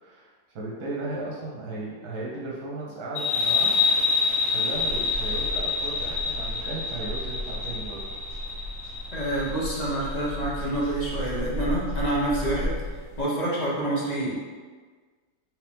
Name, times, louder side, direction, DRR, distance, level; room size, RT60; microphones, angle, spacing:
voice 1, 0.0-3.8 4.5-8.0, right 2 dB, 85° right, -4 dB, 1.4 m, -35 dB
sound 1, 3.2-10.4, left 4 dB, 75° left, 1.7 m, -27 dB
sound 2, 4.7-13.2, equal, 45° right, 0.7 m, -35 dB
voice 2, 9.1-12.7 13.2-14.3, right 1 dB, 30° left, -6 dB, 0.9 m, -27 dB
4.7 x 3.0 x 3.5 m, 1.5 s
omnidirectional pair, 1.7 m